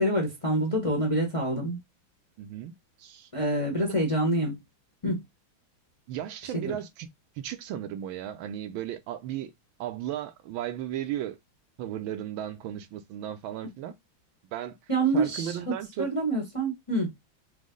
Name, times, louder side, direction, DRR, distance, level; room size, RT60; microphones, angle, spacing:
voice 1, 0.0-1.8 3.3-4.6 5.0-5.2 6.5-6.7 14.9-17.1, right 1 dB, 25° left, 0.7 m, -27 dB
voice 2, 2.4-2.7 3.0-3.3 3.8-3.9 6.1-7.1 7.4-9.5 9.8-11.4 11.8-13.9 14.4-14.8 15.1-16.1, right 11 dB, 85° right, 1.4 m, -35 dB
5.1 x 2.1 x 3.7 m
omnidirectional pair, 2.2 m